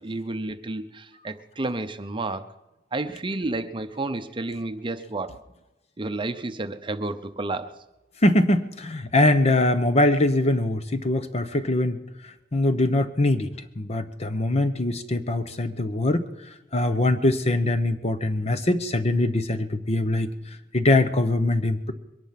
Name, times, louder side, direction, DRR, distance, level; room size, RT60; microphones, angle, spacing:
voice 1, 0.0-2.5 2.9-5.4 6.0-7.8, right 2 dB, 25° right, 9 dB, 0.7 m, -31 dB
voice 2, 8.2-12.0 12.5-16.3 16.7-20.3 20.7-21.9, left 1 dB, 35° left, 10 dB, 0.9 m, -22 dB
22.5 x 11.0 x 5.8 m, 1.0 s
head